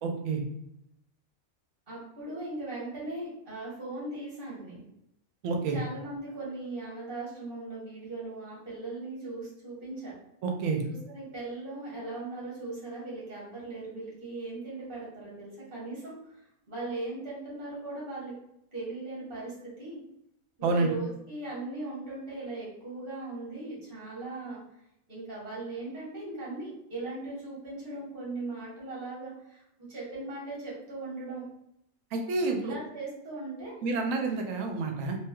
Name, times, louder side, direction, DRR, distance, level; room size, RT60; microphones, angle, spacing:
voice 1, 0.0-0.4 5.4-5.8 10.4-10.8 20.6-20.9 32.1-32.7 33.8-35.2, right 3 dB, 75° right, 3 dB, 0.9 m, -28 dB
voice 2, 1.9-4.8 5.7-10.2 10.8-18.3 18.7-20.0 20.6-24.6 25.1-29.6 29.9-31.5 32.6-33.7, right 2 dB, 40° right, -6 dB, 1.5 m, -39 dB
3.2 x 2.8 x 2.2 m, 0.80 s
omnidirectional pair, 1.4 m